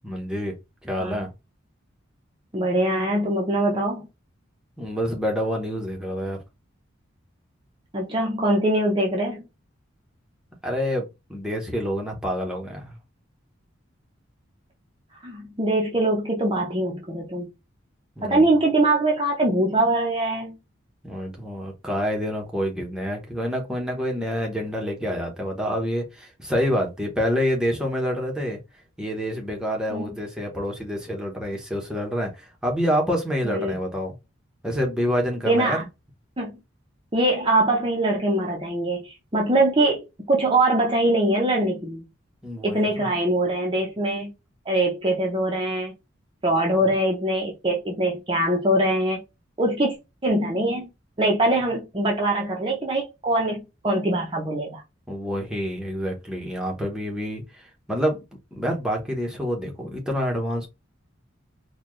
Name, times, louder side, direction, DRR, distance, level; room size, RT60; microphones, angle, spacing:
voice 1, 0.0-0.5 0.8-1.3 4.8-6.4 10.6-12.9 18.2-18.4 21.0-28.6 29.0-34.1 34.6-35.9 42.4-43.1 55.1-58.2 58.5-60.7, equal, 5° right, 1.0 m, -27 dB
voice 2, 2.5-4.1 7.9-9.4 15.2-17.5 18.2-20.6 29.9-30.0 33.4-33.7 35.5-35.8 36.4-36.5 37.1-42.1 42.6-44.3 44.7-45.9 46.4-49.2 49.6-50.0 50.2-50.9 51.2-54.8, right 1 dB, 25° right, 0.7 m, -23 dB
4.2 x 2.3 x 3.1 m
head